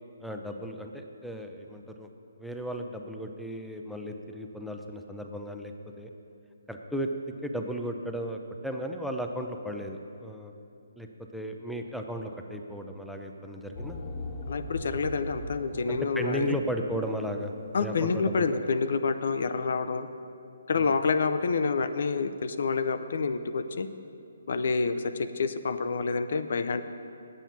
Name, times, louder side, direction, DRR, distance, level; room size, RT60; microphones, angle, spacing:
voice 1, 0.2-2.1 2.4-6.1 6.7-7.1 7.4-10.5 11.0-11.1 11.3-14.0 15.9-17.5 17.8-18.5 20.7-20.9, equal, ahead, 3 dB, 0.5 m, -35 dB
sound 1, 13.7-17.2, left 1 dB, 20° left, 0.9 m, -39 dB
voice 2, 14.5-16.6 17.7-20.1 20.7-23.9 24.5-26.8, left 4 dB, 60° left, 10 dB, 0.5 m, -28 dB
8.9 x 7.5 x 5.7 m, 2.6 s
figure-of-eight pair, 145°, 0 cm